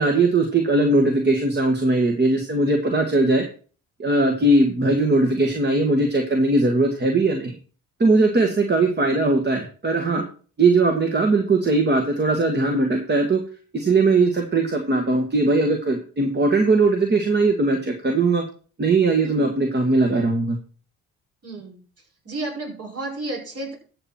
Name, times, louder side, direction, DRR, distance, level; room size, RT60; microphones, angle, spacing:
voice 1, 0.0-3.4 4.0-7.5 8.0-10.2 10.6-13.4 13.7-18.4 18.8-20.6, right 2 dB, 35° right, 3 dB, 1.9 m, -19 dB
voice 2, 8.4-8.7 19.2-19.5 21.4-21.8 22.2-23.7, right 2 dB, 50° right, 0 dB, 6.3 m, -32 dB
13.0 x 7.7 x 4.5 m, 0.40 s
cardioid pair, 90°, 30 cm